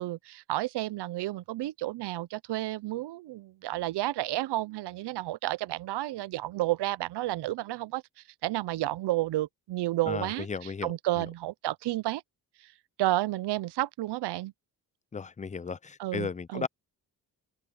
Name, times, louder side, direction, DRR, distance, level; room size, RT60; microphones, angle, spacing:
voice 1, 0.0-8.0 8.4-12.2 12.6-12.7 13.0-14.5 16.0-16.7, right 16 dB, 85° right, 0.7 m, -31 dB
voice 2, 10.1-10.9 15.1-16.7, left 5 dB, 20° left, 0.5 m, -35 dB
open air
cardioid pair, 80°, 39 cm